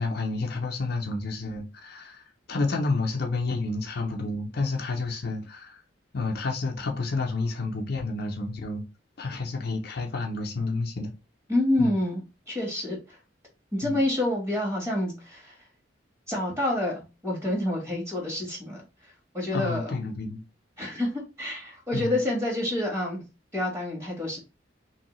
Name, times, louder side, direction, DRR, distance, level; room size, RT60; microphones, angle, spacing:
voice 1, 0.0-2.2 2.5-5.8 6.1-8.8 9.2-11.1 11.8-12.0 13.8-14.0 19.5-20.4 21.9-22.2, left 3 dB, 55° left, 0.6 m, -30 dB
voice 2, 11.5-13.2 13.7-15.6 16.3-20.0 20.8-23.3 23.5-24.4, left 1 dB, 15° right, 1.5 m, -28 dB
3.1 x 2.7 x 3.0 m
head